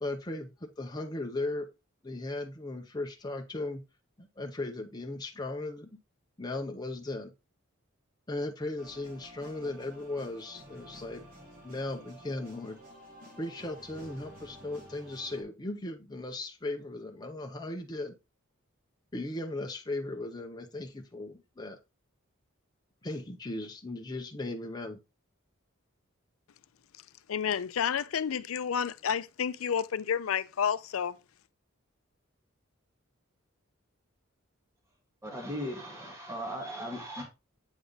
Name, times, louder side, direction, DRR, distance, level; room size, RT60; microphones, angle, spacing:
voice 1, 0.0-1.7 2.0-3.8 4.2-5.9 6.4-7.3 8.3-11.2 11.6-12.8 13.4-18.1 19.1-21.8 23.0-25.0, left 2 dB, 20° left, 0.7 m, -37 dB
sound 1, 8.8-15.4, right 1 dB, 45° right, 1.9 m, -51 dB
voice 2, 27.3-31.2, left 7 dB, 75° left, 0.5 m, -30 dB
voice 3, 35.2-37.2, equal, 15° right, 1.7 m, -37 dB
8.1 x 3.5 x 3.9 m
head